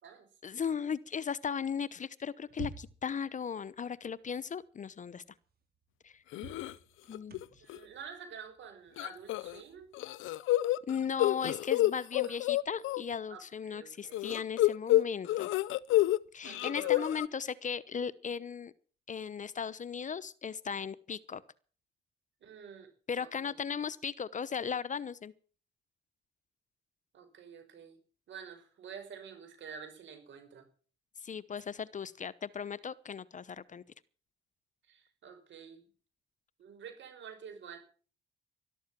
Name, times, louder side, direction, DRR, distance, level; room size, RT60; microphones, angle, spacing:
voice 1, 0.4-5.2 6.0-6.2 7.1-7.3 10.9-15.5 16.3-18.7 19.1-21.4 23.1-25.3 31.2-33.8, left 6 dB, 40° left, 18 dB, 0.9 m, -37 dB
sound 1, 2.4-3.2 5.0-5.1 5.5-5.6 6.3-9.9, right 5 dB, 50° right, 2.9 m, -48 dB
sound 2, 6.3-6.7 7.1-7.4 7.7-7.8 9.0-9.6 9.9-13.0 14.1-16.2 16.4-17.3, left 15 dB, 90° left, 0.6 m, -29 dB
voice 2, 6.4-6.8 7.6-9.9 12.2-12.4 13.3-14.3 16.4-17.3 22.4-22.9 23.2-23.5 27.1-28.0 28.3-30.7 34.8-35.9 36.6-37.8, right 7 dB, 70° right, 7 dB, 5.7 m, -49 dB
13.0 x 12.5 x 7.4 m, 0.41 s
cardioid pair, 90°, 20 cm